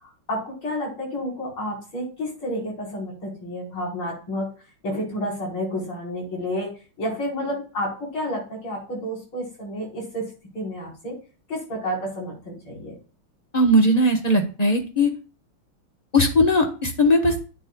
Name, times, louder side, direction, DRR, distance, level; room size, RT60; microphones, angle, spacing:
voice 1, 0.0-4.5 4.8-6.7 7.0-11.2 11.5-12.9, equal, 65° left, -3 dB, 5.4 m, -30 dB
voice 2, 13.5-15.1 16.1-17.3, left 1 dB, 25° left, 4 dB, 0.9 m, -18 dB
10.0 x 8.6 x 2.3 m, 0.35 s
omnidirectional pair, 2.4 m